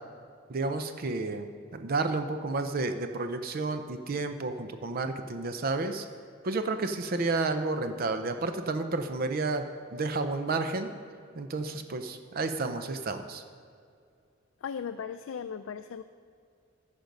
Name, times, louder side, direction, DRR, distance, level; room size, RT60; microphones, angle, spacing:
voice 1, 0.5-6.1 6.4-10.9 11.4-13.4, right 3 dB, 45° right, 8 dB, 0.5 m, -31 dB
voice 2, 14.6-16.0, left 7 dB, 75° left, 9 dB, 0.4 m, -37 dB
13.5 x 5.3 x 5.3 m, 2.3 s
head